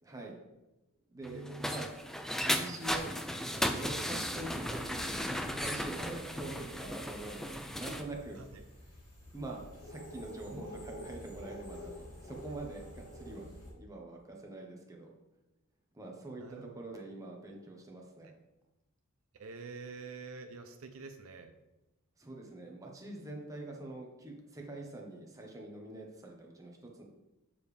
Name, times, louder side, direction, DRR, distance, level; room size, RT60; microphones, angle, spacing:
voice 1, 0.0-0.4 1.1-1.9 2.4-3.1 3.4-8.9 9.3-11.9 12.2-13.5 13.8-15.1 15.9-18.4 22.2-27.0, right 2 dB, 15° right, -1 dB, 1.1 m, -44 dB
voice 2, 1.1-1.8 8.4-8.6 16.4-16.7 19.3-21.5, right 4 dB, 70° right, 7 dB, 0.6 m, -46 dB
sound 1, 1.2-8.0, equal, ahead, 0.3 m, -36 dB
sound 2, 4.2-13.7, left 1 dB, 35° left, 2.7 m, -50 dB
6.9 x 6.9 x 3.3 m, 0.99 s
head